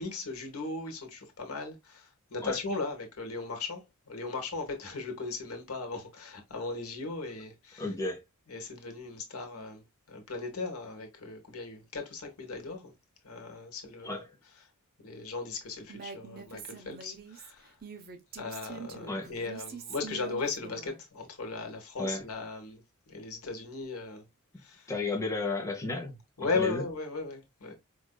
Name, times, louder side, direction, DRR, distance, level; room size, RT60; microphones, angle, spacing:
voice 1, 0.0-7.9 8.5-12.9 13.2-14.2 15.0-17.7 18.4-22.8 23.1-24.2 24.6-24.9 26.4-27.7, left 3 dB, 70° left, 1.2 m, -37 dB
voice 2, 7.8-8.2 14.0-14.4 19.1-19.3 22.0-22.2 24.9-26.8, left 3 dB, 15° left, 0.8 m, -33 dB
Female speech woman speaking, 15.9-21.0, right 6 dB, 45° right, 0.7 m, -45 dB
4.7 x 2.6 x 2.2 m
head